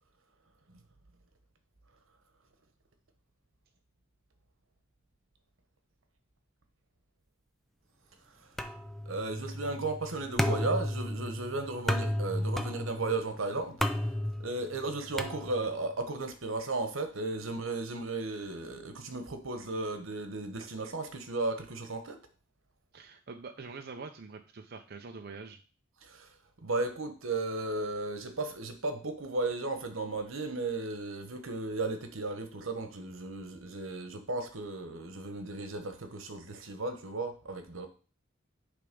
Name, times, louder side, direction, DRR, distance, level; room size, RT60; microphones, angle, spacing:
sound 1, 8.6-15.9, left 1 dB, ahead, 0.5 m, -34 dB
voice 1, 9.1-13.8 14.4-22.2 26.0-26.3 26.6-37.9, right 3 dB, 85° right, 7 dB, 1.2 m, -35 dB
voice 2, 22.9-25.6, right 4 dB, 50° right, 4 dB, 0.6 m, -45 dB
10.0 x 3.5 x 5.3 m, 0.38 s
head